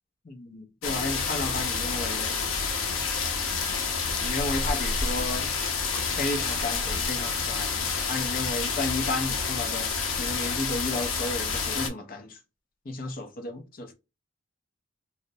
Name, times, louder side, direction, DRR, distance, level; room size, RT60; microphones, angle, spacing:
voice 1, 0.2-2.4 4.2-5.5 5.9-12.4 12.9-13.9, left 2 dB, 45° left, 0.5 m, -33 dB
sound 1, 0.8-11.9, left 5 dB, 85° left, 0.6 m, -29 dB
2.4 x 2.0 x 2.6 m
head